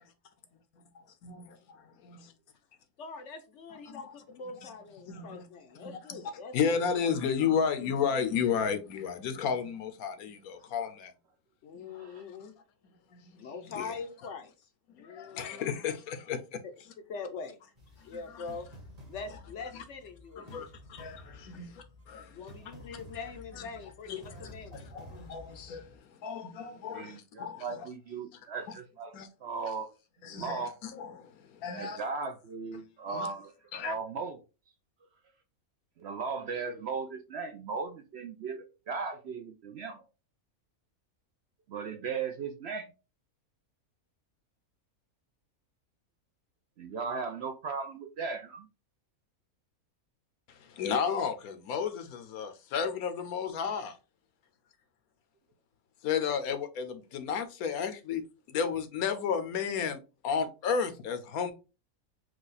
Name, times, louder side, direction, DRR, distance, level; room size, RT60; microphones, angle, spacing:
voice 1, 1.2-2.3 3.9-4.1 4.6-4.7 5.1-5.5 5.8-6.2 6.5-11.1 11.7-12.0 13.1-13.4 13.6-13.9 15.0-16.6 18.1-18.4 19.7-19.8 20.4-22.4 24.1-27.8 29.1-29.3 30.2-32.0 33.1-33.3 33.7-33.9 50.5-54.0 56.0-58.2 58.5-60.0 60.2-61.5, left 6 dB, 80° left, 1.2 m, -33 dB
voice 2, 3.0-6.8 11.6-12.5 13.4-15.8 17.1-17.6 18.0-18.7 19.1-20.7 22.2-24.9, left 4 dB, 65° left, 0.9 m, -43 dB
voice 3, 11.9-12.2 22.6-22.7 26.9-29.1 29.4-29.9 30.2-30.7 31.7-33.5 33.8-34.4 36.0-40.0 41.7-42.9 46.8-48.7, right 5 dB, 60° right, 0.7 m, -37 dB
Horror Film Score I, 17.8-26.0, left 1 dB, 30° right, 1.3 m, -51 dB
4.7 x 2.3 x 4.0 m
omnidirectional pair, 1.5 m